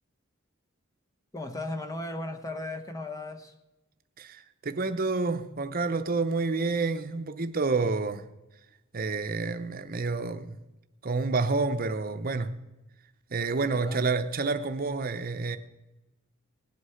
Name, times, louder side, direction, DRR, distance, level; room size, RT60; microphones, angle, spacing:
voice 1, 1.3-3.5 13.6-14.0, left 2 dB, 15° left, 0.9 m, -36 dB
voice 2, 4.2-8.3 8.9-10.6 11.0-12.6 13.3-15.6, right 3 dB, 45° right, 0.8 m, -29 dB
19.0 x 8.1 x 5.7 m
head